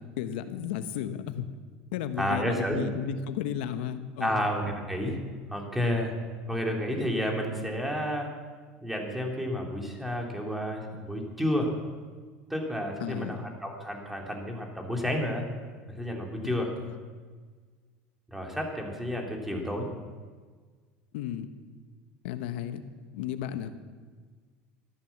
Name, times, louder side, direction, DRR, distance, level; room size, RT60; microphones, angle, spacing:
voice 1, 0.0-1.5 1.9-4.4 13.0-13.4 16.4-16.9 21.1-21.5 22.2-22.8 23.1-23.7, left 9 dB, 80° left, 10 dB, 1.2 m, -34 dB
voice 2, 2.2-2.8 4.2-5.2 5.5-6.1 6.5-8.3 8.8-11.7 12.5-15.4 16.0-16.7 18.3-19.9, equal, 5° right, 1 dB, 3.1 m, -30 dB
14.0 x 11.0 x 7.4 m, 1.5 s
supercardioid pair, 110°, 5 cm